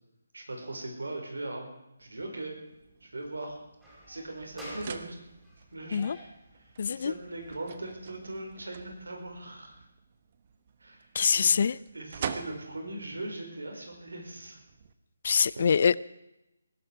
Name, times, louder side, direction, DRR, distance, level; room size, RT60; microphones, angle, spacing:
voice 1, 0.3-1.7 2.0-2.5 3.0-3.6 4.1-5.2 5.7-6.2 6.6-9.8 10.8-11.7 11.9-14.6 15.5-15.7, right 2 dB, 85° right, 2 dB, 5.3 m, -40 dB
sound 1, 2.0-14.9, right 7 dB, 40° right, 1.1 m, -46 dB
sound 2, 3.8-9.9, right 1 dB, 5° right, 5.3 m, -51 dB
voice 2, 6.8-7.1 11.1-11.8 15.2-16.0, left 6 dB, 50° left, 21 dB, 0.5 m, -24 dB
20.0 x 12.0 x 4.9 m, 0.92 s
figure-of-eight pair, 160°, 0 cm